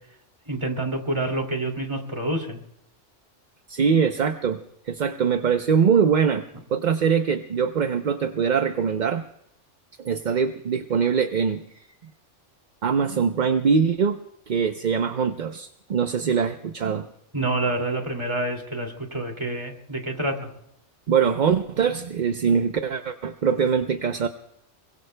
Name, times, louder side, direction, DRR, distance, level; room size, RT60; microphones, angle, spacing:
voice 1, 0.5-2.6 17.3-20.5, right 1 dB, 25° right, 3 dB, 2.5 m, -27 dB
voice 2, 3.7-6.4 6.7-9.2 10.0-11.8 12.8-14.2 14.5-17.1 21.1-24.3, right 6 dB, 45° right, 7 dB, 0.7 m, -23 dB
26.5 x 23.5 x 2.2 m, 0.79 s
omnidirectional pair, 1.2 m